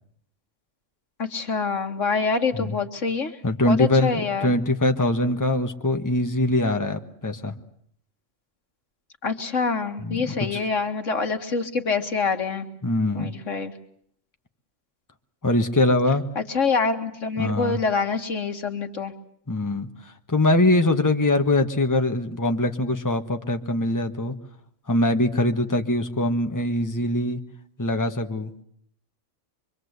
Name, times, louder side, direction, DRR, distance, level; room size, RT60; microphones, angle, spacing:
voice 1, 1.2-3.4 3.7-4.6 9.2-12.7 13.1-13.7 16.4-19.1, left 4 dB, 85° left, 6 dB, 2.2 m, -26 dB
voice 2, 3.4-7.5 10.0-10.6 12.8-13.3 15.4-16.2 17.4-17.8 19.5-24.3 24.9-27.4 27.8-28.5, left 1 dB, 15° left, 6 dB, 1.4 m, -23 dB
24.5 x 24.5 x 8.2 m, 0.67 s
omnidirectional pair, 1.3 m